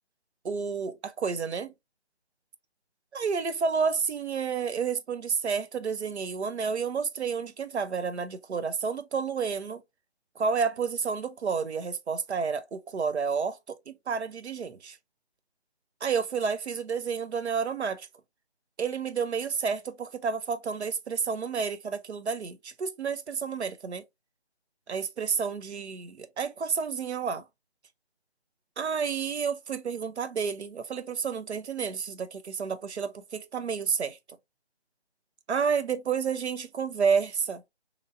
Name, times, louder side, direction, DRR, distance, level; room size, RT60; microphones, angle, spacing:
voice 1, 0.4-1.7 3.1-9.8 10.4-15.0 16.0-18.1 18.8-24.0 24.9-27.4 28.8-34.2 35.5-37.6, right 6 dB, 80° right, 0.6 m, -30 dB
2.9 x 2.6 x 2.4 m
figure-of-eight pair, 175°, 33 cm